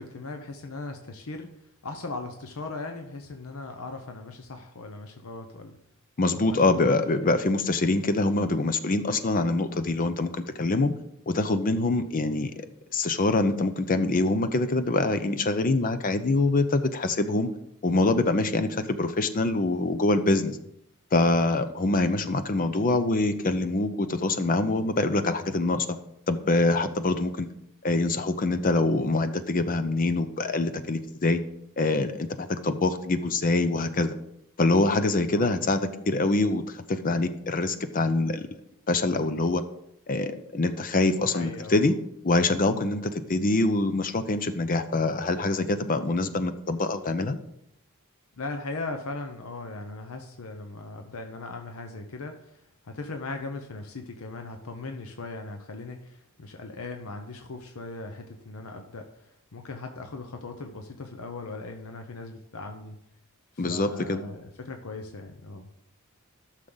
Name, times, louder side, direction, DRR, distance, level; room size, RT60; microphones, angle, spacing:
voice 1, 0.0-1.5 1.8-5.8 6.3-7.3 35.3-35.6 41.2-41.9 48.4-63.0 63.5-65.7, left 3 dB, 70° left, 5 dB, 0.8 m, -39 dB
voice 2, 6.2-10.9 11.3-12.7 12.9-17.5 17.8-20.6 21.1-25.9 26.3-27.5 27.8-31.4 31.8-34.1 34.6-38.5 38.9-39.6 40.1-41.9 42.2-47.4 63.6-64.2, left 2 dB, 40° left, 10 dB, 0.5 m, -25 dB
13.5 x 6.5 x 3.9 m, 0.79 s
head